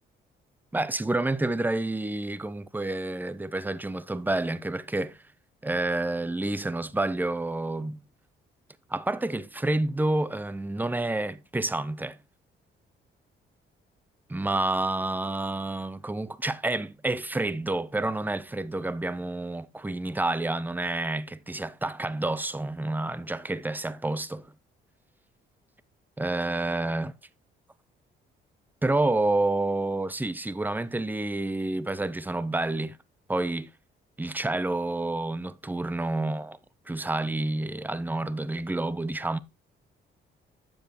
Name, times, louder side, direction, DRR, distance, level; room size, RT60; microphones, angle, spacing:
voice 1, 0.7-5.2 5.6-8.0 8.9-12.2 14.3-24.5 26.2-27.1 28.8-33.0 33.3-33.7 34.2-36.6 36.9-39.4, right 2 dB, 10° right, 0.7 m, -29 dB
9.4 x 7.4 x 3.0 m
cardioid pair, 90°, 20 cm